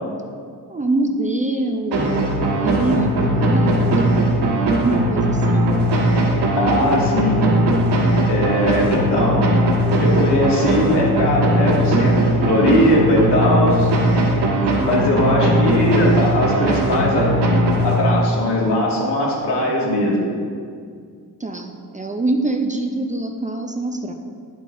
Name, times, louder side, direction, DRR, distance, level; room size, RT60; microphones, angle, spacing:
voice 1, 0.7-2.2 2.6-4.4 4.7-5.7 15.1-15.6 21.4-24.1, right 2 dB, 20° right, 4 dB, 0.3 m, -24 dB
sound 1, 1.9-18.4, right 1 dB, 80° right, 1.5 m, -18 dB
voice 2, 6.6-7.5 8.3-9.4 10.0-13.9 14.8-17.3 17.8-20.2, left 1 dB, 90° left, -3 dB, 1.9 m, -19 dB
10.5 x 7.5 x 2.5 m, 2.1 s
wide cardioid pair, 150°, 40 cm